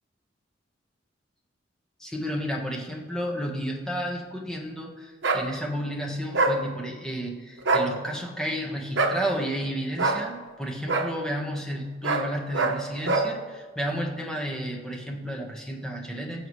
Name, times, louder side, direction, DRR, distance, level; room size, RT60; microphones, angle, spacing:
voice 1, 2.0-16.5, equal, 5° left, -1 dB, 1.4 m, -32 dB
sound 1, 5.2-5.4 6.3-6.6 7.6-7.9 9.0-9.2 10.0-10.2 10.9-11.1 12.0-12.3 12.5-12.8 13.1-13.3, right 3 dB, 75° right, 1.0 m, -23 dB
18.0 x 7.0 x 3.2 m, 1.4 s
head